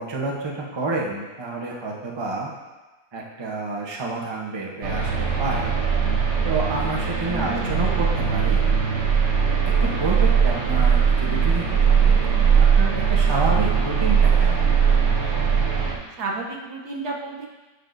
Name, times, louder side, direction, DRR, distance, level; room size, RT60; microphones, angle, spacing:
voice 1, 0.0-2.5 3.1-5.7 6.4-8.6 9.8-14.7, right 3 dB, 25° right, -2 dB, 0.5 m, -29 dB
sound 1, 4.8-15.9, right 6 dB, 45° right, 1.3 m, -20 dB
voice 2, 7.3-8.0 16.2-17.5, right 3 dB, 60° right, -1 dB, 1.4 m, -32 dB
9.9 x 6.2 x 2.7 m, 1.2 s
omnidirectional pair, 2.0 m